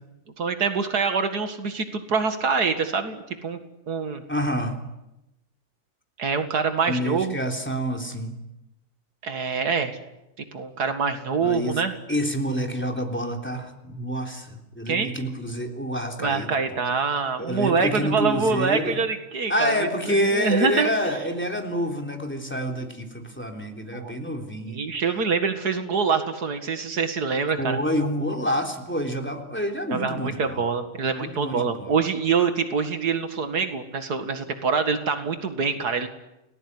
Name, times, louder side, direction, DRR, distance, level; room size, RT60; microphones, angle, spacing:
voice 1, 0.4-3.6 3.9-4.2 6.2-7.4 9.2-10.0 10.5-11.9 14.9-15.1 16.2-20.9 23.9-24.2 24.7-27.8 29.9-36.1, right 5 dB, 85° right, 8 dB, 2.5 m, -25 dB
voice 2, 4.3-4.8 6.9-8.3 11.4-11.8 12.1-16.5 17.4-19.0 19.5-24.8 27.5-30.7 31.2-31.9, equal, 5° left, 4 dB, 3.5 m, -28 dB
29.5 x 19.5 x 9.8 m, 0.94 s
omnidirectional pair, 1.6 m